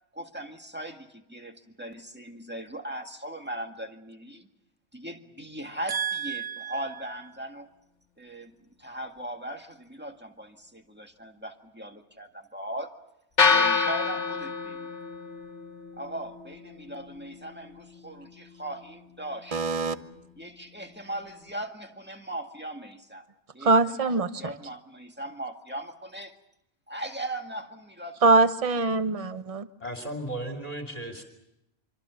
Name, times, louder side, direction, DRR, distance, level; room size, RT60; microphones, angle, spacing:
voice 1, 0.1-4.5 4.9-7.7 8.2-12.9 13.5-14.9 16.0-19.6 20.4-23.2 23.5-23.7 24.0-26.4 26.9-28.3, right 1 dB, 10° right, 4 dB, 1.8 m, -39 dB
voice 2, 5.9-6.7 19.5-20.0 23.6-24.5 28.2-29.7, right 3 dB, 30° right, 11 dB, 1.0 m, -24 dB
sound 1, 13.4-21.5, left 5 dB, 85° left, 1.9 m, -30 dB
voice 3, 29.8-31.2, right 1 dB, 35° left, 5 dB, 3.1 m, -35 dB
25.5 x 24.5 x 6.9 m, 0.86 s
omnidirectional pair, 1.2 m